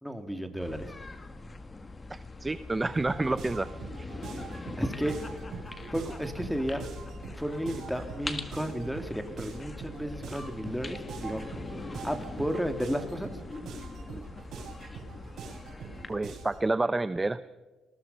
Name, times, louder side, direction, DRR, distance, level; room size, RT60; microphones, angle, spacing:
voice 1, 0.0-0.9 4.8-5.2 5.9-6.8 7.2-11.4 12.0-13.3, equal, ahead, 8 dB, 2.5 m, -33 dB
sound 1, 0.6-16.1, left 3 dB, 25° left, 2.0 m, -42 dB
voice 2, 2.1-3.7 4.0-4.1 16.1-17.4, right 2 dB, 15° right, 13 dB, 0.7 m, -29 dB
sound 2, 2.9-16.7, right 5 dB, 65° right, 7.0 m, -44 dB
28.5 x 20.5 x 5.5 m, 1.3 s
cardioid pair, 110°, 0 cm